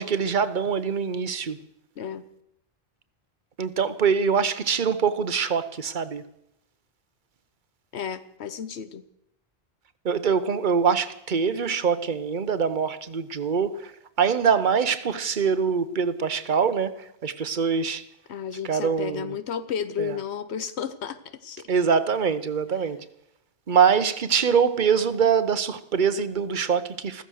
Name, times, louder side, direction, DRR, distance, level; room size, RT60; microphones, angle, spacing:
voice 1, 0.0-1.6 3.6-6.2 10.0-13.9 14.2-18.0 18.6-19.3 20.0-20.2 21.7-23.0 23.7-27.2, right 6 dB, 50° right, 1.1 m, -24 dB
voice 2, 7.9-9.0 18.3-21.7, left 7 dB, 85° left, 1.2 m, -32 dB
15.0 x 14.5 x 6.4 m
omnidirectional pair, 1.1 m